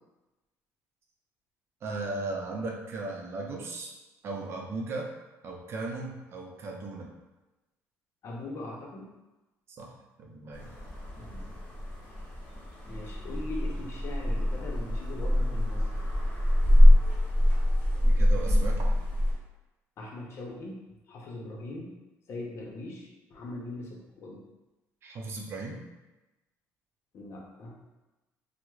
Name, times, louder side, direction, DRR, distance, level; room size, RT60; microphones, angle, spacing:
voice 1, 1.8-3.9 4.2-5.1 5.4-7.1 9.8-9.9 10.2-10.7 18.0-18.9 25.0-25.8, right 3 dB, 45° right, 0 dB, 0.5 m, -36 dB
voice 2, 8.2-9.1 11.2-11.5 12.8-16.1 20.0-21.9 22.3-24.4 27.1-27.8, left 2 dB, 50° left, -1 dB, 0.7 m, -41 dB
sound 1, 10.5-19.3, left 1 dB, 25° left, 1.2 m, -24 dB
4.5 x 2.0 x 2.3 m, 1.1 s
cardioid pair, 130°, 6 cm